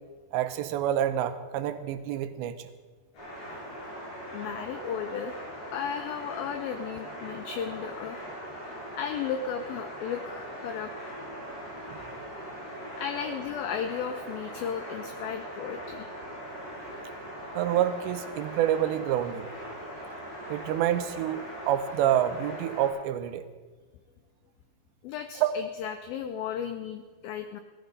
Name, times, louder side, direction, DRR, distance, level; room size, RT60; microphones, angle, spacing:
voice 1, 0.3-2.7 11.9-12.0 17.6-19.5 20.5-23.4 25.4-25.6, right 11 dB, 85° right, 10 dB, 3.0 m, -27 dB
sound 1, 3.1-22.9, equal, 70° left, 9.2 m, -40 dB
voice 2, 4.3-8.2 8.9-11.1 13.0-16.1 25.0-27.6, left 8 dB, 85° left, 8 dB, 2.0 m, -35 dB
17.0 x 13.5 x 5.3 m, 1.4 s
omnidirectional pair, 5.1 m